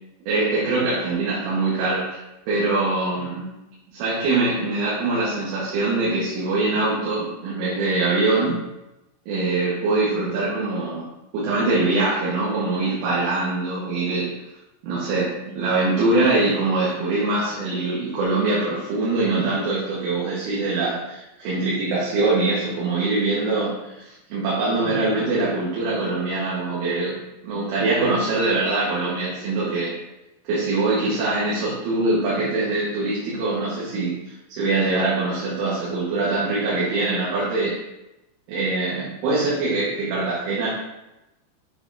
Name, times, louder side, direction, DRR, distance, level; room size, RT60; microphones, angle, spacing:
voice 1, 0.3-2.2 2.5-3.5 3.9-8.6 9.3-11.1 11.3-14.3 14.8-27.2 27.4-30.0 30.5-34.2 34.5-37.8 38.5-40.7, right 2 dB, 90° right, -7 dB, 4.2 m, -23 dB
8.0 x 7.9 x 2.8 m, 0.93 s
omnidirectional pair, 5.4 m